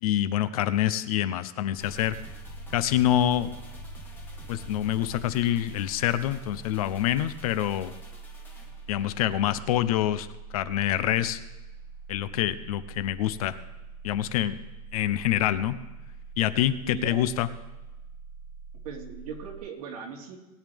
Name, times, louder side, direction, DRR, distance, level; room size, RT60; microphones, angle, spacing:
voice 1, 0.0-2.2 2.7-3.5 4.5-7.9 8.9-10.3 10.5-11.4 12.1-13.5 14.0-14.6 14.9-15.8 16.4-17.5, left 12 dB, 65° left, 13 dB, 0.8 m, -26 dB
sound 1, 1.7-19.6, right 5 dB, 25° left, 3.2 m, -44 dB
sound 2, 1.8-10.4 10.7-10.8, left 3 dB, 10° left, 1.5 m, -48 dB
voice 2, 16.8-17.2 18.8-20.4, right 6 dB, 60° right, -1 dB, 3.1 m, -39 dB
20.5 x 9.6 x 3.6 m, 1.1 s
supercardioid pair, 175°, 20 cm